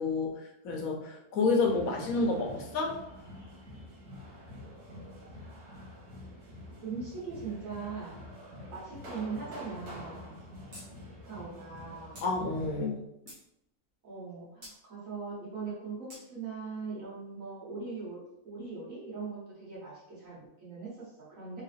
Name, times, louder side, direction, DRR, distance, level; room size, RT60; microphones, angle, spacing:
voice 1, 0.0-3.0 12.2-13.0, left 3 dB, 65° left, 0 dB, 1.2 m, -29 dB
sound 1, 1.6-12.9, left 1 dB, 85° right, 1.9 m, -47 dB
voice 2, 6.8-8.2 8.7-10.3 11.2-12.2 14.0-21.6, right 4 dB, 60° right, -6 dB, 1.9 m, -40 dB
sound 2, 10.7-10.9 11.2-11.3 12.1-12.3 12.9-13.4 14.6-14.8 16.1-16.2, equal, 40° right, 1.4 m, -48 dB
3.7 x 3.0 x 3.4 m, 0.82 s
omnidirectional pair, 1.6 m